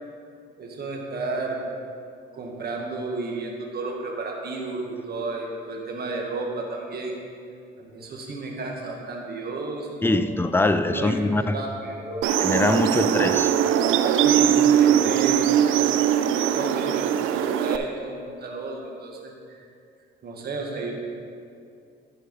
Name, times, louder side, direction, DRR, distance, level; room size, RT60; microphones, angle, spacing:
voice 1, 0.6-1.6 2.3-7.2 7.8-10.2 10.9-12.2 12.9-13.0 14.2-15.9 16.2-19.6 20.2-20.9, right 3 dB, 50° right, 0 dB, 1.5 m, -32 dB
voice 2, 10.0-11.6 12.4-13.5, left 2 dB, 10° left, 9 dB, 0.4 m, -23 dB
sound 1, 12.2-17.8, right 9 dB, 85° right, 0.4 m, -21 dB
11.0 x 4.7 x 5.1 m, 2.4 s
cardioid pair, 90°, 20 cm